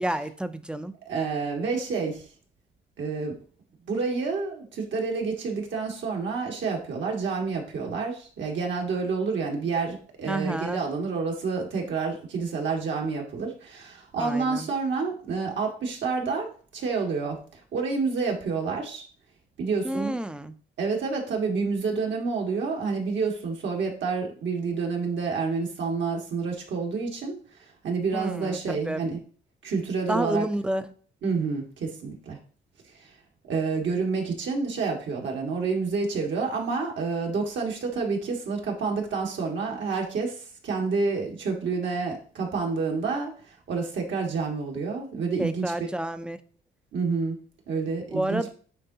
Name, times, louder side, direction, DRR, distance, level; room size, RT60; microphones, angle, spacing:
voice 1, 0.0-0.9 10.3-10.8 14.2-14.7 19.8-20.5 28.1-29.0 30.1-30.8 45.4-46.4 48.1-48.5, right 1 dB, 5° right, 0.5 m, -29 dB
voice 2, 1.1-2.2 3.0-3.4 3.9-19.0 19.6-20.2 20.8-29.2 29.6-30.5 31.2-32.4 33.0-33.1 33.5-45.7 46.9-47.4 47.7-48.5, right 4 dB, 70° right, 1.8 m, -29 dB
8.9 x 3.8 x 2.8 m
cardioid pair, 90°, 20 cm